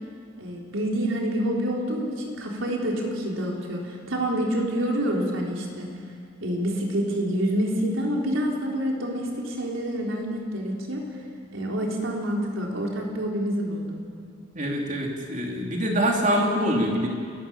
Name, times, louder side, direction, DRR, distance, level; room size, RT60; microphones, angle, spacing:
voice 1, 0.4-5.9 6.4-11.1 11.5-14.0, equal, 85° right, -1 dB, 3.9 m, -27 dB
voice 2, 14.5-17.1, equal, 40° right, 0 dB, 3.0 m, -24 dB
29.0 x 14.5 x 7.1 m, 2.1 s
head